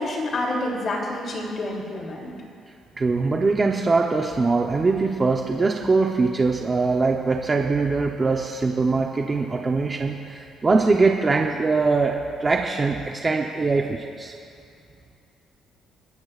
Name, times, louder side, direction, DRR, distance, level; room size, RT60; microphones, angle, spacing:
voice 1, 0.0-2.3, left 1 dB, 40° left, -1 dB, 3.0 m, -28 dB
voice 2, 3.0-14.3, right 3 dB, 25° right, 1 dB, 0.8 m, -22 dB
29.5 x 14.5 x 2.5 m, 2.4 s
cardioid pair, 140°, 0 cm